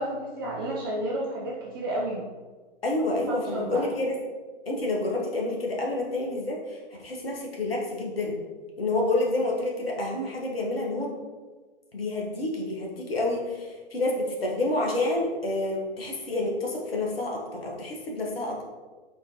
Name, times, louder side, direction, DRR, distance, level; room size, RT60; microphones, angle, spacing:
voice 1, 0.0-2.3 3.0-3.9, right 1 dB, 25° right, -4 dB, 0.3 m, -32 dB
voice 2, 2.8-4.2 4.7-8.3 8.8-11.1 11.9-18.7, left 2 dB, 75° left, -1 dB, 1.0 m, -28 dB
4.3 x 2.5 x 2.9 m, 1.3 s
figure-of-eight pair, 110°, 30 cm